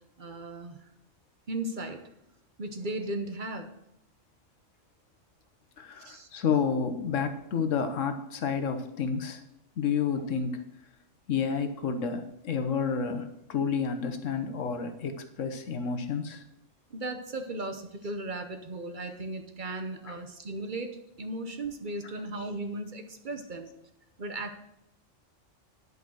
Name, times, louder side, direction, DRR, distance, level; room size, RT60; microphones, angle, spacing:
voice 1, 0.2-0.9 1.5-2.1 2.6-3.7 6.0-6.3 16.9-23.7 24.2-24.6, right 2 dB, 45° right, 7 dB, 0.9 m, -36 dB
voice 2, 5.8-9.4 9.8-10.6 11.3-16.4 20.1-20.2, left 6 dB, 90° left, 8 dB, 1.3 m, -30 dB
10.5 x 5.4 x 6.3 m, 0.85 s
omnidirectional pair, 1.3 m